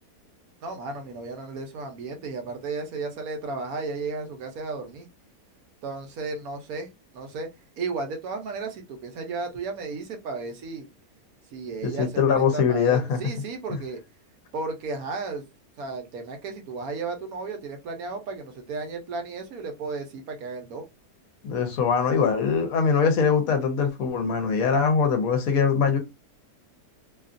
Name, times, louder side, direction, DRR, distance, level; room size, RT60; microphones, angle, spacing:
voice 1, 0.6-5.1 5.8-6.9 7.1-7.5 7.8-10.9 11.5-14.0 14.5-15.4 15.8-20.8, right 4 dB, 70° right, 1.1 m, -34 dB
voice 2, 11.8-13.2 13.7-13.8 21.4-26.0, left 6 dB, 70° left, 1.0 m, -22 dB
2.8 x 2.4 x 2.4 m
omnidirectional pair, 1.7 m